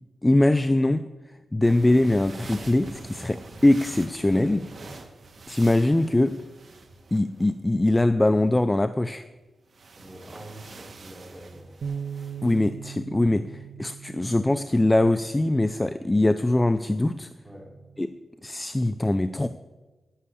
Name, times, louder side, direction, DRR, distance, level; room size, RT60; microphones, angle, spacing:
voice 1, 0.2-1.0 1.5-4.6 5.5-6.4 7.1-9.3 12.4-17.3 18.0-18.1 18.4-19.5, left 1 dB, 15° left, 11 dB, 0.5 m, -22 dB
sound 1, 1.6-7.6 9.7-12.7, right 3 dB, 55° right, 1.6 m, -45 dB
voice 2, 4.3-4.9 10.0-11.8 17.4-17.7, right 1 dB, 10° right, -2 dB, 4.5 m, -45 dB
Bass guitar, 11.8-18.1, right 7 dB, 70° right, 0.9 m, -40 dB
11.5 x 9.7 x 8.4 m, 1.2 s
wide cardioid pair, 95°, 0 cm